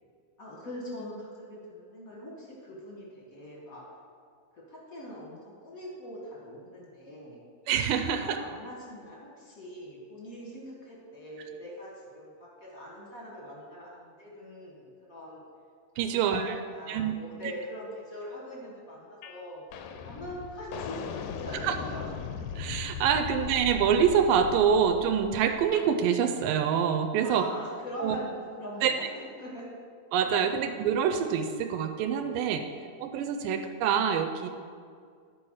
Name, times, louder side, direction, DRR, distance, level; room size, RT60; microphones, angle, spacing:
voice 1, 0.4-3.8 4.5-7.4 8.1-15.4 16.0-19.6 20.0-22.1 27.2-29.1 29.4-29.6, equal, 55° left, -4 dB, 0.9 m, -42 dB
voice 2, 7.7-8.4 16.0-16.6 16.9-17.2 21.6-21.7 22.6-27.5 28.0-28.2 28.8-28.9 30.1-34.5, right 7 dB, 80° right, 6 dB, 2.2 m, -26 dB
sound 1, 19.2-19.4 19.7-25.9, left 6 dB, 80° left, 1.9 m, -39 dB
11.5 x 4.6 x 6.3 m, 2.1 s
omnidirectional pair, 4.1 m